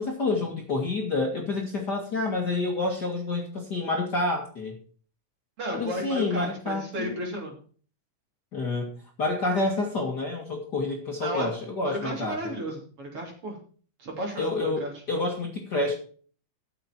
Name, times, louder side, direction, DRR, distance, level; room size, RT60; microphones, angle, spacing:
voice 1, 0.0-4.7 5.7-7.1 8.5-8.9 9.2-12.4 14.4-15.9, left 2 dB, 35° left, 0 dB, 2.0 m, -28 dB
voice 2, 5.6-7.5 11.2-11.5 11.8-13.6 14.0-14.9, equal, 45° right, 1 dB, 3.9 m, -33 dB
14.0 x 7.2 x 4.4 m, 0.42 s
omnidirectional pair, 3.6 m